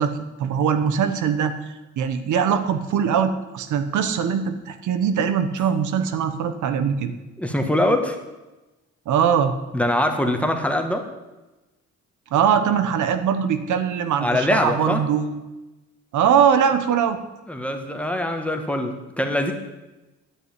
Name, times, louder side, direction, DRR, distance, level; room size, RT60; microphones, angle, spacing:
voice 1, 0.0-1.6 2.0-7.1 9.1-9.5 12.3-15.4 16.1-17.2, right 7 dB, 75° right, 9 dB, 1.1 m, -21 dB
voice 2, 7.4-8.2 9.7-11.1 14.2-15.0 17.5-19.5, left 1 dB, 5° left, 4 dB, 1.7 m, -23 dB
11.0 x 6.6 x 9.2 m, 1.1 s
cardioid pair, 90°, 30 cm